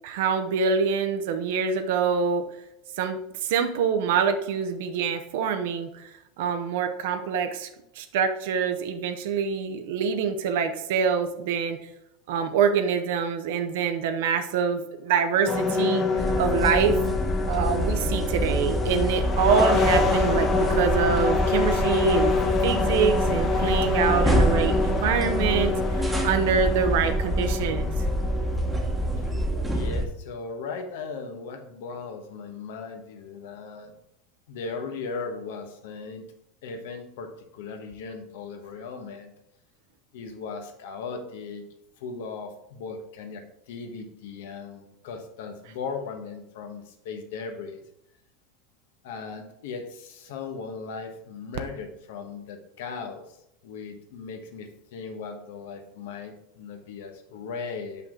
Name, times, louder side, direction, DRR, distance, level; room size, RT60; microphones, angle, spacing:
voice 1, 0.0-2.4 3.0-6.1 6.4-7.7 8.0-11.8 12.3-16.0 16.4-17.0 17.5-22.3 22.6-27.9, right 6 dB, 75° right, 7 dB, 0.7 m, -25 dB
sound 1, 15.5-29.3, left 4 dB, 25° left, 1.0 m, -27 dB
sound 2, 16.2-30.0, equal, 5° right, 1.0 m, -26 dB
voice 2, 29.7-33.9 34.5-36.3 36.6-39.3 40.1-41.6 42.0-47.8 49.0-53.4 53.6-58.1, left 4 dB, 85° left, 6 dB, 1.2 m, -37 dB
6.0 x 5.7 x 3.7 m, 0.83 s
supercardioid pair, 155°, 0 cm